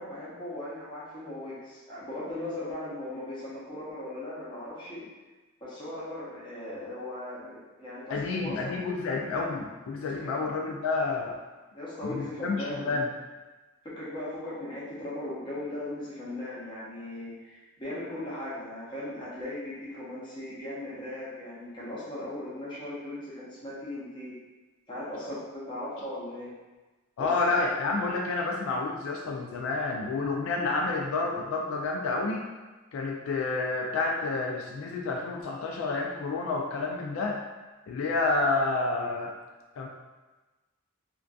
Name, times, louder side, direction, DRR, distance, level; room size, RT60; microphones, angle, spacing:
voice 1, 0.0-5.0 5.6-8.8 10.2-10.3 11.7-13.0 13.8-24.4 24.9-26.6 27.2-27.3, left 1 dB, 25° left, -8 dB, 0.7 m, -38 dB
voice 2, 8.1-11.4 12.0-13.1 27.2-32.4 32.9-37.4 37.9-39.3 39.8-39.9, left 3 dB, 80° left, 0 dB, 0.3 m, -29 dB
2.5 x 2.3 x 2.3 m, 1.2 s
head